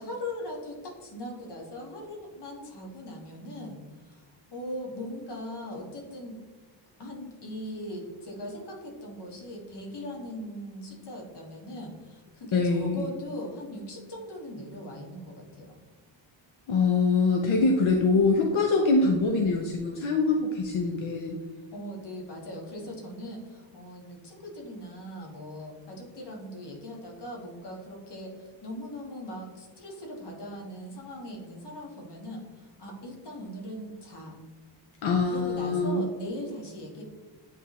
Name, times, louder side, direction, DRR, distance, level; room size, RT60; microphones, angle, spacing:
voice 1, 0.0-6.4 7.0-15.8 21.7-34.4 35.2-37.0, left 1 dB, 60° left, 0 dB, 1.5 m, -40 dB
voice 2, 12.5-13.0 16.7-21.4 35.0-36.1, left 3 dB, 80° left, 2 dB, 0.7 m, -24 dB
9.0 x 3.4 x 3.1 m, 1.4 s
wide cardioid pair, 155°, 47 cm